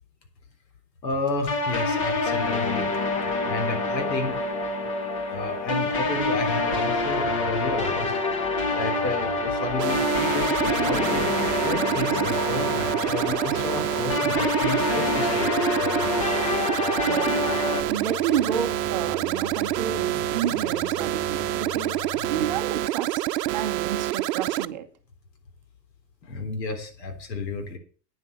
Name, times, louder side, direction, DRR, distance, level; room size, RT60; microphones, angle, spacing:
voice 1, 1.0-2.9 3.4-4.7 5.3-8.1 8.7-11.3 11.6-16.1 26.2-27.8, left 3 dB, 80° left, 7 dB, 3.6 m, -32 dB
sound 1, 1.5-17.8, left 3 dB, 20° left, 0.5 m, -26 dB
sound 2, 7.2-22.6, left 5 dB, 35° left, 1.0 m, -43 dB
sound 3, 9.8-24.7, right 14 dB, 75° right, 0.8 m, -27 dB
voice 2, 17.1-17.5 17.8-24.9, right 9 dB, 30° right, 6 dB, 0.7 m, -31 dB
9.7 x 7.7 x 7.0 m, 0.41 s
supercardioid pair, 180°, 49 cm